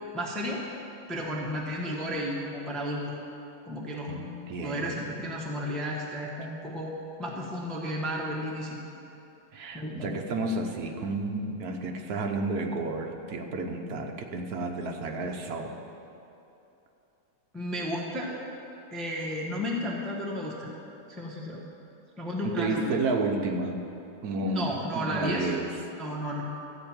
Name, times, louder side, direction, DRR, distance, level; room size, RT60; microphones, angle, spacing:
voice 1, 0.1-0.6 1.1-3.1 3.7-4.1 4.6-6.9 7.2-8.8 9.7-10.2 17.5-18.4 18.9-20.7 21.1-21.6 22.2-23.0 24.4-25.5 26.0-26.4, equal, ahead, -3 dB, 0.9 m, -33 dB
voice 2, 4.1-5.3 9.5-15.8 22.4-23.8 24.2-25.7, right 3 dB, 60° right, 3 dB, 1.3 m, -31 dB
13.5 x 4.5 x 8.7 m, 2.9 s
omnidirectional pair, 2.0 m